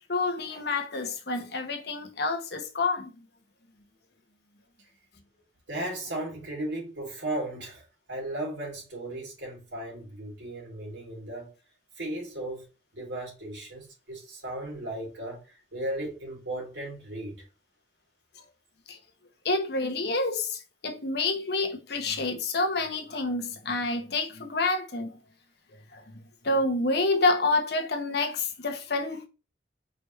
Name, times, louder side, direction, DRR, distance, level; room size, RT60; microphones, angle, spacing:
voice 1, 0.1-3.1 18.9-19.0 19.4-25.2 25.9-26.0 26.4-29.3, left 3 dB, 65° left, 1.0 m, -28 dB
voice 2, 5.7-11.5 12.0-12.6 12.9-15.4 15.7-17.4, right 1 dB, 85° right, 2.7 m, -36 dB
5.0 x 3.4 x 3.1 m
head